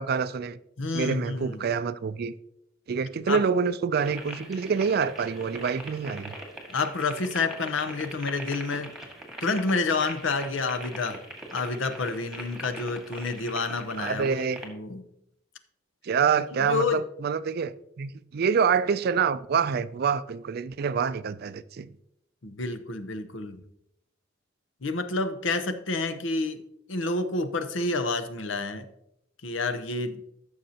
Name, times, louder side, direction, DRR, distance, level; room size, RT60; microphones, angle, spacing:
voice 1, 0.0-0.6 0.9-2.3 2.9-6.4 14.0-14.6 16.0-21.9, right 6 dB, 50° right, 0.4 m, -26 dB
voice 2, 0.8-1.6 3.3-3.4 6.7-8.9 9.4-11.2 11.5-15.0 16.6-17.0 22.4-23.6 24.8-26.6 26.9-28.8 29.4-30.2, left 3 dB, 70° left, 0.8 m, -29 dB
sound 1, 3.9-14.7, right 1 dB, ahead, 1.7 m, -42 dB
14.5 x 6.5 x 2.8 m
head